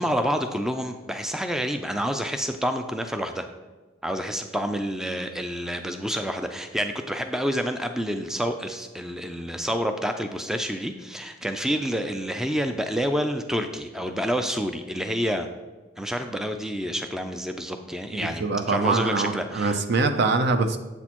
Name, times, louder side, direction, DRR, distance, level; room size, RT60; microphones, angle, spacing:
voice 1, 0.0-3.5 4.0-15.5 16.0-19.8, equal, 5° right, 6 dB, 0.3 m, -28 dB
voice 2, 18.1-20.8, right 3 dB, 60° right, 8 dB, 0.6 m, -24 dB
7.9 x 6.3 x 2.9 m, 1.3 s
head